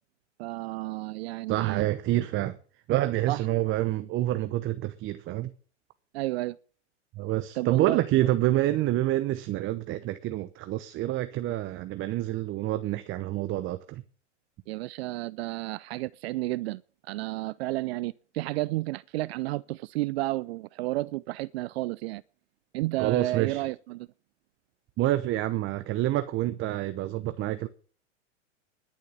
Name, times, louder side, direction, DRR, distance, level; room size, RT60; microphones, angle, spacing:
voice 1, 0.4-1.8 3.3-3.4 6.1-6.6 7.6-8.0 14.7-16.8 17.1-22.2 22.7-24.1, right 19 dB, 55° right, 0.5 m, -31 dB
voice 2, 1.5-2.6 2.9-5.5 7.2-14.0 23.0-23.7 25.0-27.7, right 15 dB, 35° right, 0.8 m, -27 dB
11.0 x 7.4 x 9.5 m
hypercardioid pair, 105°, 37 cm